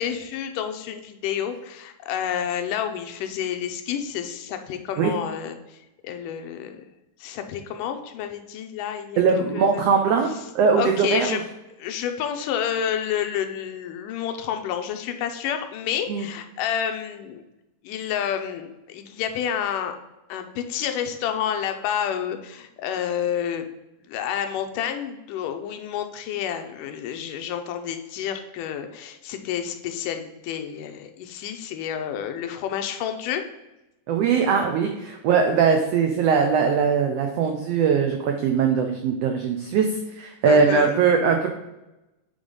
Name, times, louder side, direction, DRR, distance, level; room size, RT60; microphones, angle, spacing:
voice 1, 0.0-5.8 6.0-6.8 7.2-9.2 9.5-9.8 10.8-11.4 11.8-17.4 17.8-20.0 20.3-23.7 24.1-33.4 40.5-41.0, left 9 dB, 85° left, 6 dB, 2.3 m, -29 dB
voice 2, 9.2-10.3 10.5-11.4 16.1-16.2 34.1-39.9 40.2-41.5, right 6 dB, 90° right, 4 dB, 1.4 m, -20 dB
8.9 x 3.5 x 5.3 m, 0.95 s
omnidirectional pair, 3.7 m